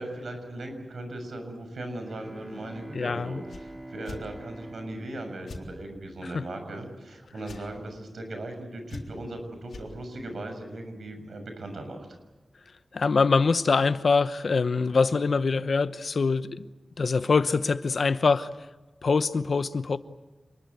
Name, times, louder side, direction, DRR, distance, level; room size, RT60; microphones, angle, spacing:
voice 1, 0.0-12.1, right 1 dB, 70° right, 6.6 m, -38 dB
Bowed string instrument, 2.0-6.3, right 1 dB, 10° right, 3.2 m, -45 dB
voice 2, 2.9-3.4 6.2-6.4 12.9-16.7 17.0-18.5 19.0-20.0, left 4 dB, 60° left, 0.9 m, -24 dB
sound 1, 3.5-3.6 4.0-4.2 5.5-5.6 7.4-7.6 8.9-9.3 9.7-9.9, left 3 dB, 85° left, 3.7 m, -41 dB
28.0 x 21.5 x 8.1 m
wide cardioid pair, 125°, 0 cm